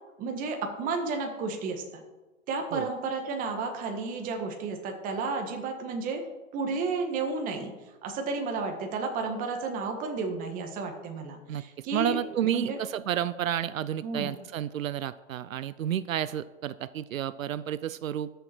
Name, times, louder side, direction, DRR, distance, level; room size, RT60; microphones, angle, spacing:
voice 1, 0.2-2.0 2.5-6.2 6.5-7.7 8.0-12.1 12.4-12.8 14.0-14.3, right 4 dB, 20° right, 4 dB, 1.5 m, -32 dB
voice 2, 11.5-18.3, right 10 dB, 85° right, 16 dB, 0.6 m, -31 dB
13.0 x 6.9 x 4.4 m, 1.2 s
hypercardioid pair, 145°, 39 cm